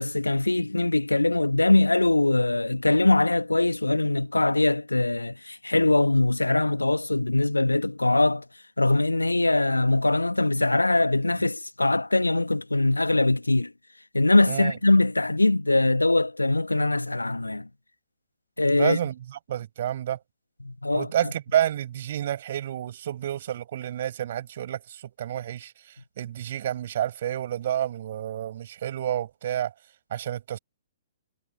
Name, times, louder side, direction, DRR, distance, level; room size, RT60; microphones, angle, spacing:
voice 1, 0.0-8.5 8.8-13.7 14.1-17.7 18.6-19.0 20.6-21.1, left 2 dB, 80° left, 2.0 m, -22 dB
voice 2, 14.5-14.8 18.7-20.2 20.9-29.7 30.1-30.6, right 11 dB, 50° right, 5.5 m, -29 dB
figure-of-eight pair, 120°, 0 cm